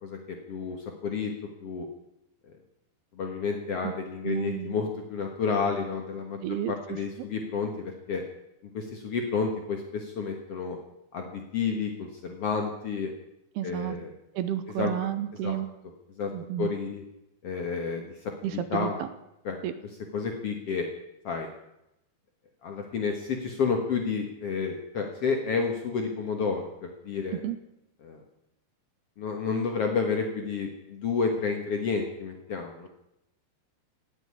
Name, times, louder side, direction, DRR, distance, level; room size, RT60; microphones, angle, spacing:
voice 1, 0.0-1.3 1.6-1.9 3.1-6.4 6.7-8.2 8.7-10.8 11.1-13.1 13.6-14.1 14.8-14.9 15.4-15.6 16.2-16.3 16.6-17.0 17.4-18.9 19.4-19.6 20.1-20.9 21.2-21.5 22.6-27.4 28.0-28.2 29.2-32.9, left 5 dB, 90° left, 3 dB, 1.3 m, -30 dB
voice 2, 4.2-4.8 6.4-6.7 13.6-14.0 14.3-15.7 16.3-16.7 18.4-19.1 19.6-19.7 27.4-27.6, right 11 dB, 80° right, 12 dB, 2.5 m, -31 dB
18.0 x 8.2 x 9.6 m, 0.86 s
omnidirectional pair, 5.2 m